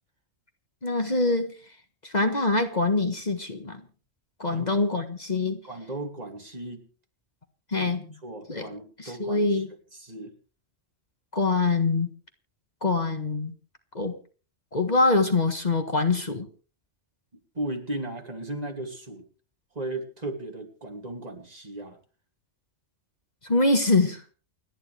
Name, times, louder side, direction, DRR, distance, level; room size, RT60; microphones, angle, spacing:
voice 1, 0.8-1.5 2.0-3.8 4.4-5.6 7.7-8.1 8.5-8.7 9.0-9.7 11.3-12.1 12.8-13.5 14.0-14.2 14.7-16.5 23.4-24.2, left 3 dB, 40° left, 6 dB, 1.6 m, -24 dB
voice 2, 5.6-6.8 7.8-7.9 8.2-9.6 9.9-10.3 14.0-14.1 17.5-19.3 19.7-22.0, right 1 dB, 35° right, 3 dB, 2.8 m, -36 dB
29.5 x 10.0 x 3.4 m, 0.38 s
omnidirectional pair, 1.2 m